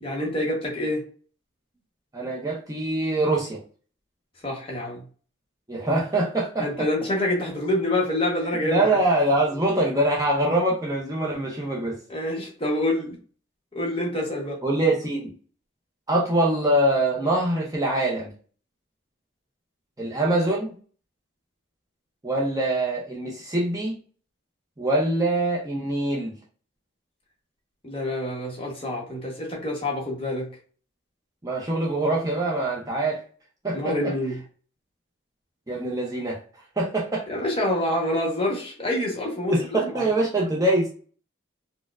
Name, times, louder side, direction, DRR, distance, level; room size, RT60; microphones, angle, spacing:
voice 1, 0.0-1.0 4.4-5.0 6.6-8.9 12.1-13.2 13.7-14.6 27.8-30.5 33.7-34.4 37.3-40.1, left 1 dB, 25° left, 1.0 m, -27 dB
voice 2, 2.1-3.6 5.7-6.7 8.6-12.0 14.6-15.3 16.1-18.3 20.0-20.7 22.2-24.0 24.8-26.3 31.4-33.2 33.6-34.1 35.7-36.4 36.8-37.2 39.5-40.9, right 1 dB, 15° right, 0.5 m, -24 dB
4.2 x 2.1 x 2.3 m
head